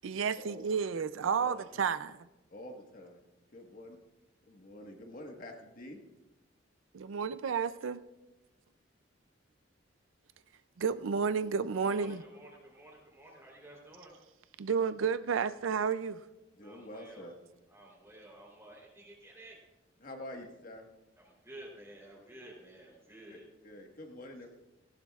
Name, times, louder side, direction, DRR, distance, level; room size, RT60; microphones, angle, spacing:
voice 1, 0.0-2.2 6.9-8.0 10.8-12.2 14.6-16.2, right 6 dB, 80° right, 0.4 m, -31 dB
voice 2, 2.5-3.2 3.5-4.0 4.5-6.0 16.5-17.4 20.0-20.9 23.3-23.4 23.6-24.5, left 1 dB, 45° left, 1.5 m, -47 dB
voice 3, 11.7-14.2 16.6-17.3 17.7-19.6 21.2-23.5, right 1 dB, 15° right, 3.4 m, -52 dB
18.0 x 16.5 x 2.4 m
head